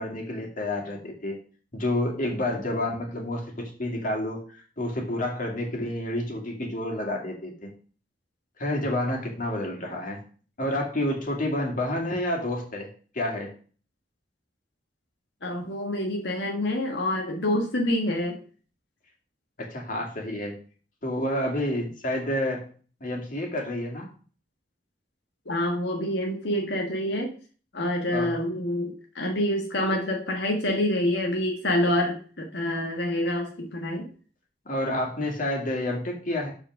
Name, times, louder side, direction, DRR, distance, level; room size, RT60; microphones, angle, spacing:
voice 1, 0.0-1.4 1.7-7.7 8.6-10.2 10.6-12.9 13.1-13.5 19.6-20.6 21.0-22.7 23.0-24.1 28.1-28.4 34.7-36.5, left 1 dB, 50° left, 1 dB, 2.4 m, -29 dB
voice 2, 15.4-18.4 25.5-27.3 27.7-34.1, left 1 dB, 85° left, 1 dB, 1.5 m, -27 dB
7.4 x 4.9 x 6.2 m, 0.41 s
head